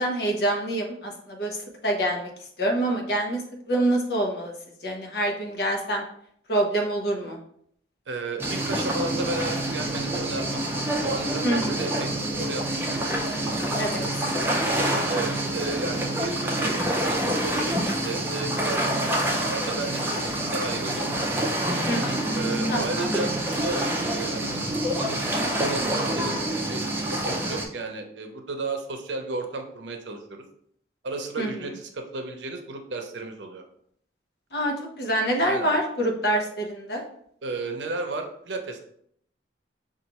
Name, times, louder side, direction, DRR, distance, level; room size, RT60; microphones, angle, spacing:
voice 1, 0.0-1.6 1.8-2.3 2.6-3.4 3.7-4.5 4.8-6.0 6.5-7.4 11.4-11.8 13.8-14.7 21.9-22.3 22.7-23.1 31.4-31.5 34.5-37.0, right 1 dB, 60° left, 1 dB, 0.8 m, -26 dB
voice 2, 8.1-13.1 15.1-21.1 22.3-24.7 25.0-26.8 27.1-30.4 31.0-33.6 35.4-35.7 37.4-38.8, right 3 dB, 80° right, 4 dB, 0.6 m, -34 dB
sound 1, 8.4-27.7, right 1 dB, 10° right, 0.4 m, -27 dB
5.5 x 2.4 x 2.9 m, 0.68 s
head